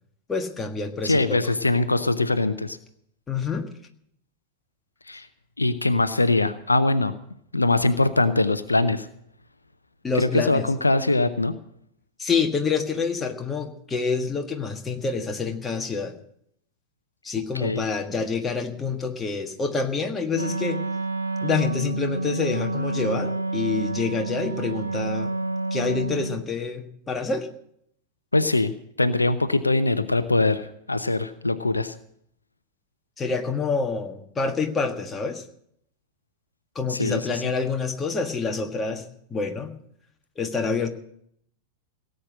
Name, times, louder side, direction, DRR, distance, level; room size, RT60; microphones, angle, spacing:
voice 1, 0.3-1.4 3.3-3.7 10.0-10.7 12.2-16.2 17.2-20.8 21.4-25.3 25.7-27.5 33.2-35.4 36.8-39.0 39.3-39.7 40.4-40.9, left 4 dB, 15° left, 4 dB, 1.6 m, -27 dB
voice 2, 1.0-2.8 5.1-5.3 5.6-7.1 7.5-9.1 10.1-11.5 17.5-17.8 28.3-28.7 29.0-32.0 36.9-37.5, left 2 dB, 80° left, 13 dB, 0.7 m, -22 dB
Wind instrument woodwind instrument, 20.3-26.4, right 2 dB, 75° right, 0.8 m, -29 dB
17.5 x 8.0 x 7.5 m, 0.71 s
figure-of-eight pair, 90°, 0 cm